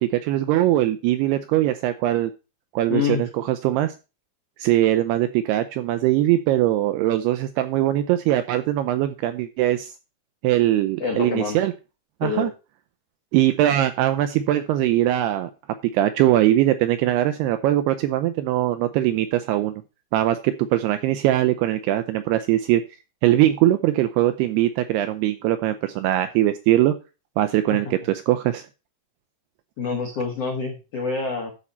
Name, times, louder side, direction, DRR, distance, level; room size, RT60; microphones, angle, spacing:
voice 1, 0.0-2.3 2.7-3.9 4.6-9.9 10.4-11.7 12.2-12.5 13.3-15.5 15.9-19.8 20.1-22.8 23.2-26.9 27.4-28.7, right 13 dB, 85° right, 10 dB, 2.3 m, -21 dB
voice 2, 2.9-3.2 11.0-11.6 12.2-12.5 27.7-27.8 29.8-31.5, left 5 dB, 85° left, 2 dB, 1.3 m, -26 dB
12.0 x 4.3 x 5.5 m, 0.30 s
omnidirectional pair, 5.2 m